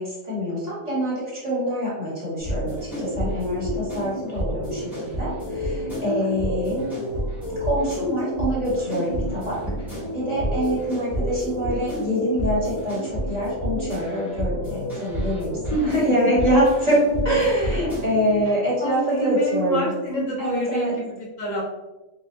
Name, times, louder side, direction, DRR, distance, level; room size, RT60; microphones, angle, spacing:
voice 1, 0.0-6.9 7.6-9.6 10.1-19.9 20.4-20.9, equal, 30° right, -9 dB, 1.7 m, -25 dB
sound 1, 2.4-18.4, equal, ahead, 1.2 m, -29 dB
voice 2, 5.8-6.3 15.7-16.0 18.4-18.5 18.8-21.6, equal, 70° left, -3 dB, 1.3 m, -27 dB
3.6 x 2.9 x 2.7 m, 1.1 s
omnidirectional pair, 1.4 m